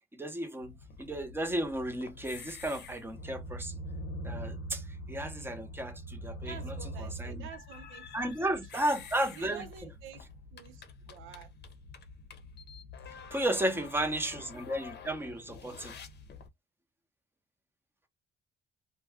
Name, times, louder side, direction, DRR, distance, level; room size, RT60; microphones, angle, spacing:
voice 1, 0.1-3.8 4.2-7.5 8.1-9.6 13.3-15.9, right 1 dB, 10° right, 0.8 m, -34 dB
sound 1, 0.6-16.5, left 1 dB, 55° left, 0.7 m, -45 dB
voice 2, 6.4-8.9 9.4-10.2 10.5-10.8 11.1-11.5 13.5-14.1, right 8 dB, 90° right, 0.6 m, -49 dB
2.2 x 2.2 x 3.4 m
cardioid pair, 90°, 20 cm